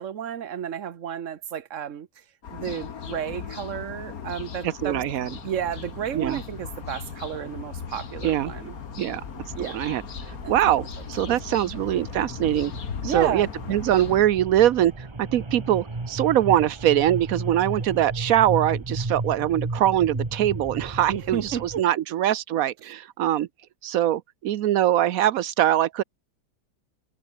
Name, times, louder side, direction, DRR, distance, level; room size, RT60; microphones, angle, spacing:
voice 1, 0.0-2.1 2.5-5.0 5.4-8.8 9.5-9.8 10.4-10.6 11.3-11.4 11.7-11.9 13.0-13.5 21.1-22.0, right 9 dB, 45° right, 1.1 m, -32 dB
sound 1, 2.4-14.2, left 7 dB, 45° left, 1.8 m, -38 dB
voice 2, 4.6-5.3 6.1-6.4 8.2-8.5 9.0-9.2 9.6-12.7 13.0-23.5 23.8-26.0, right 12 dB, 70° right, 0.8 m, -23 dB
sound 2, 5.3-21.8, right 3 dB, 15° right, 1.1 m, -36 dB
omnidirectional pair, 2.3 m